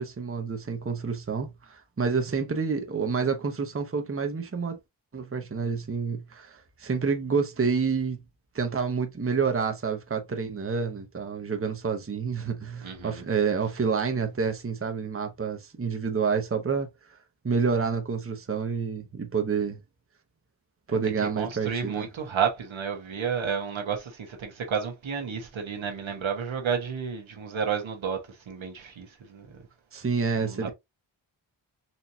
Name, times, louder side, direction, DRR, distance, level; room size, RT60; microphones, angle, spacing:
voice 1, 0.0-4.8 5.1-8.2 8.5-16.9 17.4-19.8 20.9-22.1 29.9-30.7, right 5 dB, 30° right, 0.9 m, -28 dB
voice 2, 12.8-13.2 21.4-28.2 28.5-29.5 30.4-30.7, right 7 dB, 75° right, 1.2 m, -31 dB
4.3 x 2.9 x 2.7 m
cardioid pair, 60°, 47 cm